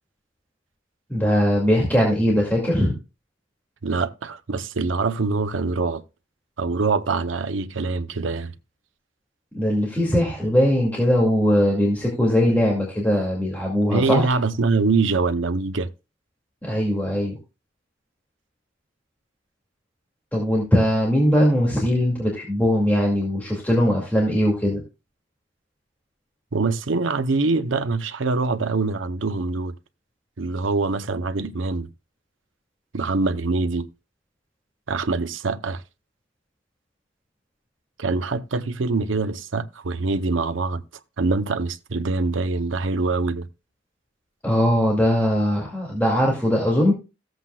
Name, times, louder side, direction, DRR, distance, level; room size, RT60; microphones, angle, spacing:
voice 1, 1.1-2.9 9.5-14.3 16.6-17.4 20.3-24.8 44.4-46.9, equal, 10° left, 2.3 m, -20 dB
voice 2, 3.8-6.0 6.6-8.5 13.9-15.9 26.5-29.7 30.4-31.9 32.9-33.9 34.9-35.8 38.0-40.8 41.2-43.5, right 3 dB, 85° right, 0.7 m, -24 dB
15.0 x 7.8 x 2.3 m
head